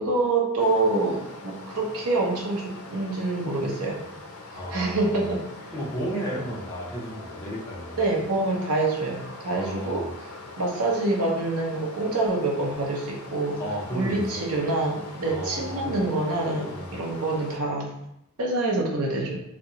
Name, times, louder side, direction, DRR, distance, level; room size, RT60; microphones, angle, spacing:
voice 1, 0.0-4.0 4.7-5.4 8.0-10.3 10.6-13.6 13.9-17.9 18.4-19.4, right 2 dB, 90° right, -1 dB, 0.8 m, -26 dB
Stream, 0.6-17.6, left 2 dB, 70° left, 0.5 m, -42 dB
voice 2, 4.5-5.2 5.7-8.3 9.5-10.1 13.6-14.5 15.2-16.0 16.7-16.9, right 1 dB, 15° left, -5 dB, 0.7 m, -33 dB
2.8 x 2.2 x 3.8 m, 0.79 s
head